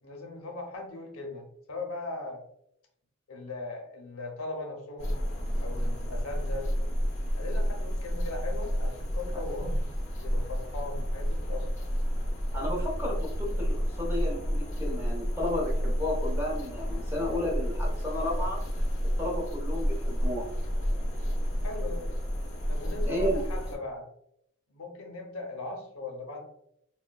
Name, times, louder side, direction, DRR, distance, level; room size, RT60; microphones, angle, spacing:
voice 1, 0.0-2.4 3.3-5.2 5.6-6.7 7.4-9.8 10.2-11.7 21.6-22.0 22.7-24.1 24.7-26.4, left 2 dB, 80° left, 2 dB, 0.7 m, -39 dB
sound 1, 5.0-23.7, equal, 35° left, 0.8 m, -30 dB
voice 2, 12.5-18.6 19.0-20.5 23.0-23.4, left 1 dB, 10° right, -3 dB, 0.8 m, -33 dB
4.2 x 2.2 x 2.2 m, 0.75 s
head